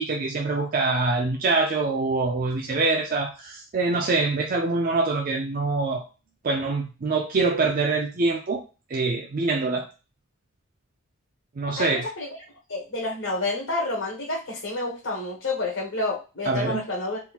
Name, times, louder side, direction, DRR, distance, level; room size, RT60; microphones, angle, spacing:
voice 1, 0.0-6.0 6.4-8.6 8.9-9.9 11.6-12.1 16.5-16.8, right 3 dB, 40° right, 2 dB, 0.4 m, -24 dB
voice 2, 11.8-12.3 12.7-17.2, left 2 dB, 65° left, -3 dB, 1.0 m, -29 dB
3.7 x 2.8 x 2.3 m, 0.31 s
head